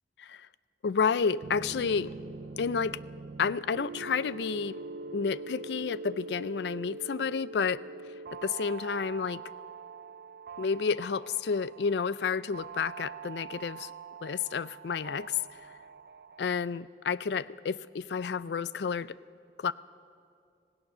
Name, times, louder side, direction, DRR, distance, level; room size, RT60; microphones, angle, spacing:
voice 1, 0.8-2.1 2.6-3.0 3.4-4.8 5.1-7.8 8.4-9.4 10.6-13.9 14.2-15.4 16.4-19.2 19.6-19.7, left 5 dB, 75° left, 18 dB, 0.4 m, -30 dB
sound 1, 1.0-16.5, right 4 dB, 60° right, 0.4 m, -44 dB
26.0 x 17.0 x 6.7 m, 2.4 s
head